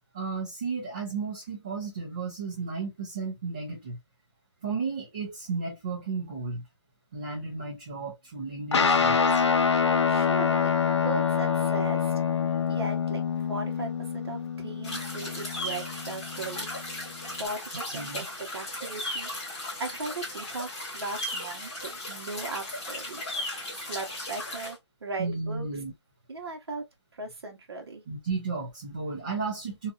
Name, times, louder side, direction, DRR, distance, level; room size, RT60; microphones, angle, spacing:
voice 1, 0.1-4.0 4.6-6.6 7.1-9.4 17.9-18.2 25.2-25.9 28.1-29.9, right 4 dB, 15° right, 0.4 m, -33 dB
Guitar, 8.7-17.5, left 6 dB, 75° left, 0.6 m, -26 dB
voice 2, 10.0-10.7 11.0-12.1 12.7-13.2 13.5-16.7 17.4-19.3 19.8-23.2 23.7-25.7 26.3-26.8 27.1-28.0, right 3 dB, 60° right, 1.1 m, -37 dB
sound 1, 14.8-24.7, left 1 dB, 15° left, 0.9 m, -36 dB
2.7 x 2.3 x 2.4 m
hypercardioid pair, 170°, 15 cm